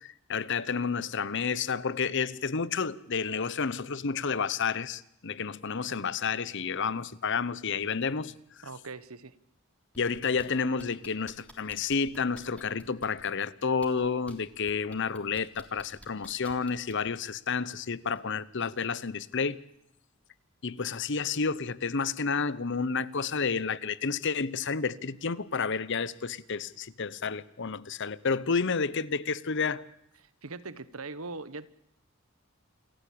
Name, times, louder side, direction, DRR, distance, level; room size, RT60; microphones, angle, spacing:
voice 1, 0.0-8.3 10.0-19.6 20.6-29.9, left 5 dB, 60° left, 0.9 m, -30 dB
voice 2, 8.6-9.3 30.2-31.7, right 3 dB, 80° right, 1.3 m, -41 dB
sound 1, 9.9-10.5 10.8-13.2 13.7-14.3 14.7-17.1 18.1-18.2, left 1 dB, 5° left, 3.6 m, -51 dB
28.0 x 15.0 x 8.6 m
head